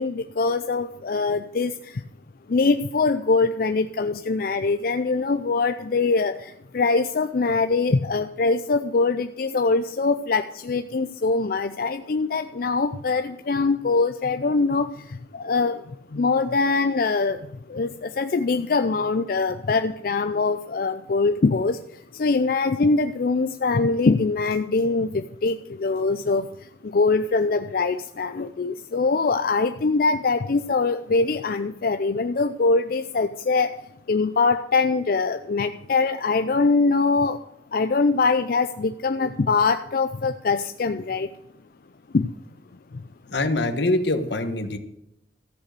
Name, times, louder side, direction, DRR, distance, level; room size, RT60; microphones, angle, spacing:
voice 1, 0.0-2.0 2.5-33.7 34.1-37.4 37.7-41.3 42.1-42.3 42.9-43.0, left 4 dB, 55° left, 9 dB, 0.5 m, -23 dB
voice 2, 43.3-44.8, left 2 dB, 80° left, 9 dB, 1.3 m, -24 dB
14.0 x 6.6 x 7.7 m, 0.82 s
head